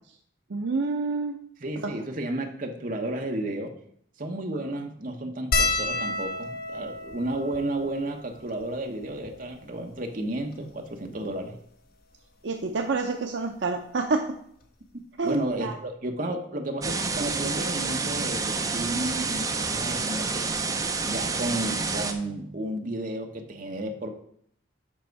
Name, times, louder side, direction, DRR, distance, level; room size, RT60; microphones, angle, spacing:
voice 1, 0.5-1.4 1.8-1.9 12.4-14.3 15.2-15.8, right 3 dB, 65° right, 4 dB, 0.5 m, -28 dB
voice 2, 1.6-3.7 4.2-11.6 15.2-20.4 21.0-24.1, right 1 dB, 45° right, 3 dB, 1.0 m, -32 dB
sound 1, 5.5-10.1 10.9-11.0 11.2-11.4 12.6-12.8 14.3-14.4 14.6-14.8, left 3 dB, 50° left, 0.8 m, -31 dB
sound 2, 16.8-22.1, right 4 dB, 20° right, 0.6 m, -28 dB
7.5 x 5.5 x 4.6 m, 0.67 s
head